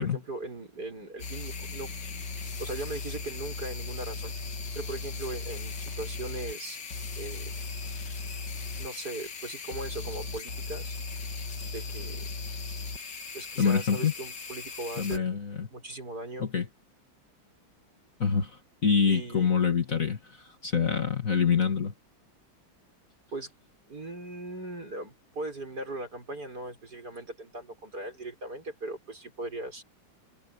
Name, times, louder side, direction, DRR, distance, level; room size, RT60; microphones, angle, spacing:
voice 1, 0.0-2.0 2.6-4.3 4.8-6.8 7.2-7.7 8.8-11.0 11.7-12.4 13.3-15.4 15.7-16.5 19.1-19.5 23.3-23.5 23.9-29.8, right 2 dB, 50° right, 7.1 m, -39 dB
sound 1, 1.2-15.2, left 4 dB, 60° left, 2.6 m, -37 dB
voice 2, 13.6-14.1 15.0-15.7 16.4-16.7 18.2-20.2 20.6-21.9, left 6 dB, 40° left, 2.5 m, -26 dB
omnidirectional pair, 2.2 m